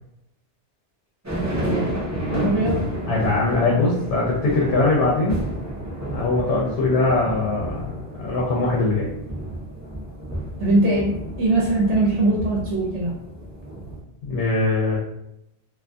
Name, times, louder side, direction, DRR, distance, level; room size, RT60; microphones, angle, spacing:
sound 1, 1.2-14.0, right 1 dB, 20° right, 0.5 m, -31 dB
voice 1, 1.6-2.0 2.3-2.8 10.6-13.1, right 2 dB, 85° right, -4 dB, 0.9 m, -21 dB
voice 2, 3.1-5.4 6.1-7.9 8.2-9.1 14.2-15.0, left 3 dB, 80° left, -3 dB, 0.9 m, -21 dB
2.5 x 2.4 x 2.2 m, 0.80 s
omnidirectional pair, 1.1 m